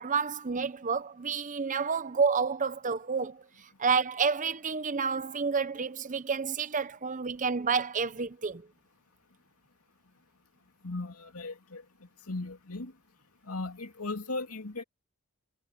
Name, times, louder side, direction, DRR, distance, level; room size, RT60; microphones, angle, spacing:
voice 1, 0.0-3.4 3.8-8.6, right 5 dB, 35° right, 0.8 m, -29 dB
voice 2, 10.8-11.8 12.3-12.9 13.4-14.8, left 2 dB, 90° left, 2.8 m, -37 dB
head